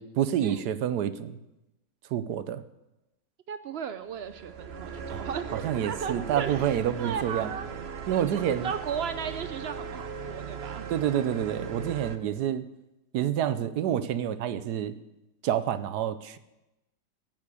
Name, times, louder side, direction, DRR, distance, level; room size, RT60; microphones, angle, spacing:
voice 1, 0.0-1.4 2.1-2.6 5.1-7.5 8.1-8.7 10.9-12.7 13.1-15.0 15.4-16.4, right 10 dB, 75° right, 14 dB, 1.2 m, -28 dB
voice 2, 3.5-7.7 8.1-10.8, right 7 dB, 90° right, 11 dB, 0.5 m, -36 dB
sound 1, 4.1-12.2, right 6 dB, 45° right, 0.9 m, -38 dB
15.0 x 7.3 x 8.3 m, 0.95 s
omnidirectional pair, 1.9 m